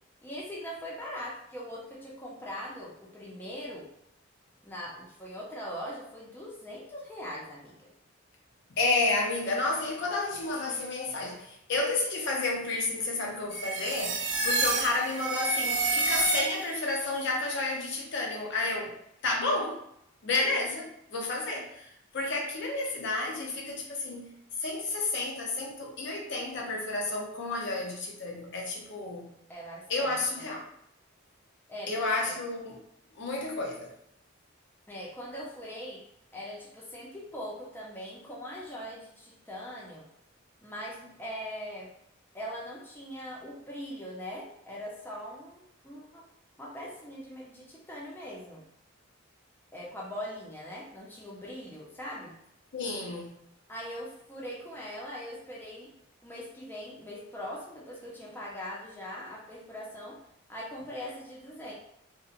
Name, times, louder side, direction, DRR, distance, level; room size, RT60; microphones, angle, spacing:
voice 1, 0.2-3.9 4.6-7.9 29.5-30.4 31.7-32.4 34.9-36.0 36.3-40.0 40.6-41.9 42.3-46.2 46.6-48.6 49.7-52.4 53.7-55.9 56.2-60.2 60.5-61.7, equal, 10° left, -5 dB, 0.5 m, -41 dB
voice 2, 8.7-18.9 19.2-19.8 20.2-29.3 29.9-30.6 31.9-32.8 33.1-33.9 52.7-53.4, left 3 dB, 60° left, 0 dB, 0.6 m, -31 dB
sound 1, 13.5-16.9, right 3 dB, 65° right, 0.5 m, -29 dB
2.7 x 2.1 x 2.4 m, 0.74 s
head